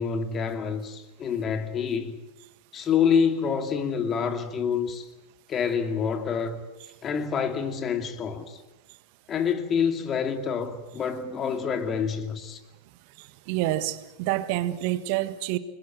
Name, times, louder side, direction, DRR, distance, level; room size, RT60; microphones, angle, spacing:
voice 1, 0.0-2.2 2.7-5.1 5.5-6.6 7.0-8.6 9.3-12.6, left 6 dB, 25° left, 2.5 m, -27 dB
voice 2, 13.2-15.6, right 15 dB, 45° right, 1.5 m, -28 dB
29.0 x 21.0 x 7.6 m
figure-of-eight pair, 90°, 0 cm